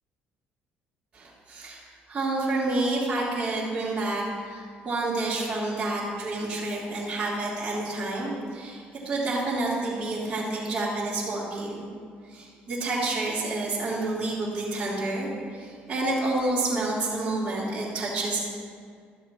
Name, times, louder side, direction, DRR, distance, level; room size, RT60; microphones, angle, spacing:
voice 1, 1.1-11.8 12.2-18.4, right 2 dB, 25° right, -10 dB, 2.8 m, -29 dB
14.5 x 12.5 x 3.0 m, 2.1 s
cardioid pair, 125°, 4 cm